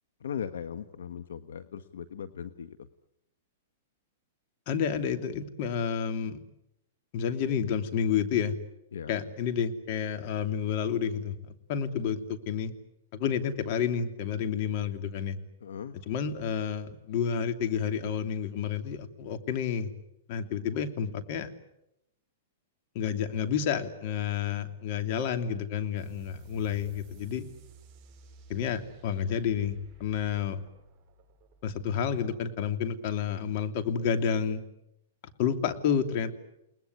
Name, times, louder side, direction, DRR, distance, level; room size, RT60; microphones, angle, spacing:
voice 1, 0.2-2.9 8.9-9.2 15.6-16.0, left 8 dB, 80° left, 11 dB, 1.3 m, -38 dB
voice 2, 4.7-6.4 7.1-8.5 9.1-12.7 13.1-15.4 16.1-19.9 20.3-21.5 22.9-27.5 28.5-30.6 31.6-34.6 35.4-36.3, left 7 dB, 50° left, 8 dB, 2.9 m, -30 dB
sound 1, 26.0-33.1, right 6 dB, 30° right, 6.7 m, -54 dB
30.0 x 20.0 x 9.7 m, 0.85 s
hypercardioid pair, 135°, 0 cm